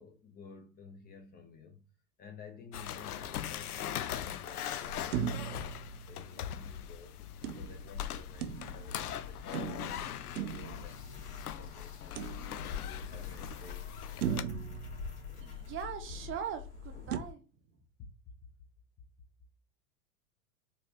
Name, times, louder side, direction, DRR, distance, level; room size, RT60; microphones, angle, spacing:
voice 1, 0.0-5.7 6.1-14.6, left 4 dB, 20° left, 0.6 m, -54 dB
sound 1, 2.7-14.4, left 10 dB, 90° left, 0.5 m, -41 dB
sound 2, 5.1-6.7 7.4-9.0 9.5-11.5 12.1-13.0 13.5-13.6 14.2-15.9 17.1-17.2, right 9 dB, 90° right, 0.6 m, -39 dB
sound 3, 7.9-17.3, left 7 dB, 40° left, 2.3 m, -45 dB
voice 2, 15.4-17.4, right 8 dB, 30° right, 0.7 m, -40 dB
4.1 x 2.5 x 3.3 m
hypercardioid pair, 110°, 44 cm